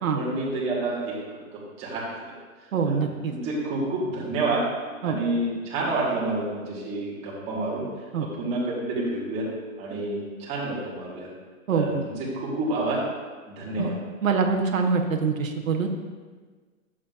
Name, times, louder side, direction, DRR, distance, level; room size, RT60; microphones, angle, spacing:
voice 1, 0.1-2.4 2.8-3.0 3.3-4.6 5.0-7.9 8.2-9.5 9.8-11.3 11.7-13.0 13.5-14.0, right 2 dB, 15° right, -5 dB, 1.4 m, -29 dB
voice 2, 2.7-3.3 5.0-5.2 8.1-8.3 11.7-12.0 13.8-13.9 14.2-15.9, right 5 dB, 75° right, 3 dB, 1.0 m, -24 dB
9.6 x 7.3 x 2.4 m, 1.4 s
hypercardioid pair, 155°, 41 cm